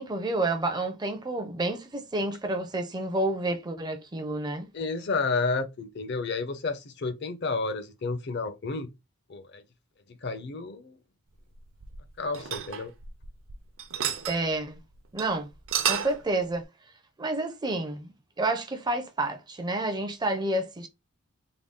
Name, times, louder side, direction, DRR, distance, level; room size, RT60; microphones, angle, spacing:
voice 1, 0.0-4.7 14.3-14.8 15.1-15.5 15.9-16.6 17.2-18.1 18.4-20.9, right 2 dB, 20° right, 0.5 m, -29 dB
voice 2, 4.7-8.9 9.3-9.6 10.2-10.9 12.2-12.9, left 3 dB, 50° left, 0.6 m, -31 dB
sound 1, 11.5-13.5 13.8-14.4 14.8-14.9 15.2-15.3 15.5-16.2, right 9 dB, 60° right, 0.6 m, -30 dB
3.7 x 2.2 x 3.5 m
head